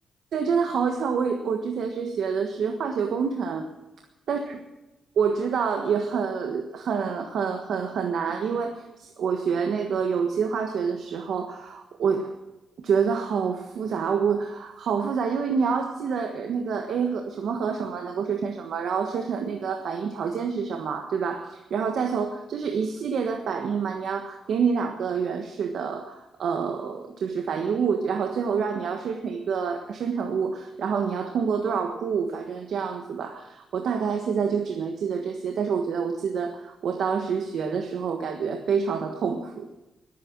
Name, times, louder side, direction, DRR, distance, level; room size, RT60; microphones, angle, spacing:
voice 1, 0.3-3.7 4.3-4.6 5.2-12.4 12.8-39.7, right 6 dB, 80° right, 4 dB, 1.4 m, -27 dB
21.5 x 9.4 x 6.1 m, 1.0 s
cardioid pair, 85°, 0 cm